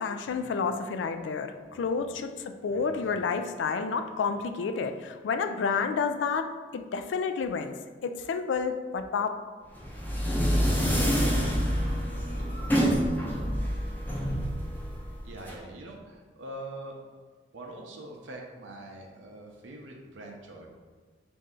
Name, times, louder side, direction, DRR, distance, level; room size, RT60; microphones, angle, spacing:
voice 1, 0.0-9.3, left 5 dB, 75° left, 8 dB, 0.3 m, -30 dB
voice 2, 1.7-2.1 12.3-12.6 15.2-17.0 17.5-20.7, right 1 dB, 90° right, 0 dB, 0.6 m, -43 dB
sound 1, 9.7-15.5, equal, 10° left, 0.6 m, -27 dB
4.2 x 2.6 x 3.7 m, 1.4 s
head